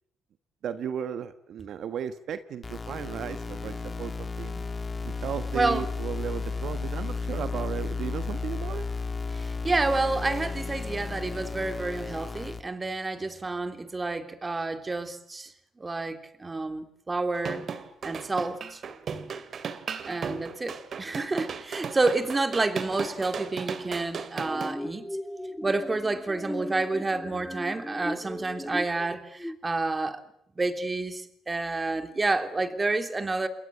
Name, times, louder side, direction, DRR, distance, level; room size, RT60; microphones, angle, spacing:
voice 1, 0.6-4.7 5.0-8.9, right 8 dB, 70° right, 1.3 m, -35 dB
sound 1, 2.6-12.6, left 4 dB, 30° left, 1.6 m, -33 dB
voice 2, 5.5-5.9 9.3-15.5 15.8-17.6 18.0-18.8 20.1-25.1 25.6-30.2 30.6-33.5, right 3 dB, 25° right, 3.2 m, -29 dB
sound 2, 17.3-24.7, right 6 dB, 55° right, 2.4 m, -36 dB
sound 3, 24.4-29.6, left 1 dB, 5° left, 1.7 m, -37 dB
29.0 x 21.5 x 8.0 m
cardioid pair, 90°, 0 cm